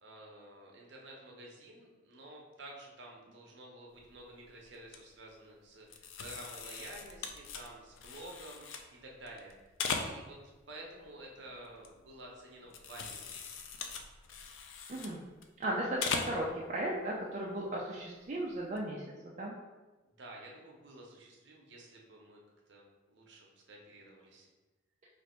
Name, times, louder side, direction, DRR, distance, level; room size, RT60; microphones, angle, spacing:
voice 1, 0.0-9.6 9.9-10.4 10.7-13.5 20.0-22.4 22.7-24.5, right 1 dB, 65° right, -1 dB, 0.8 m, -51 dB
sound 1, 4.0-4.3 4.6-5.0 5.9-8.9 9.2-10.5 10.9-12.3 12.6-15.6 16.0-16.5 16.9-17.0 18.5-18.8, left 5 dB, 85° left, 0.4 m, -40 dB
voice 2, 15.6-19.0 19.4-19.5, right 1 dB, 35° right, -4 dB, 0.4 m, -36 dB
3.3 x 2.5 x 4.3 m, 1.2 s
head